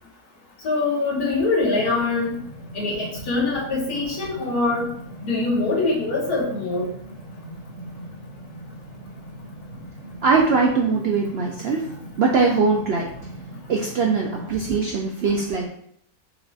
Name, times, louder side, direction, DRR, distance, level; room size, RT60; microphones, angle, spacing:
voice 1, 0.6-2.4 2.7-4.9 5.2-6.9, left 3 dB, 80° left, -3 dB, 1.7 m, -23 dB
sound 1, 1.7-14.8, equal, 45° right, 1.0 m, -40 dB
voice 2, 10.2-11.8 12.2-13.1 13.7-15.7, right 4 dB, 65° right, -1 dB, 0.6 m, -21 dB
4.6 x 2.4 x 3.9 m, 0.67 s
omnidirectional pair, 1.6 m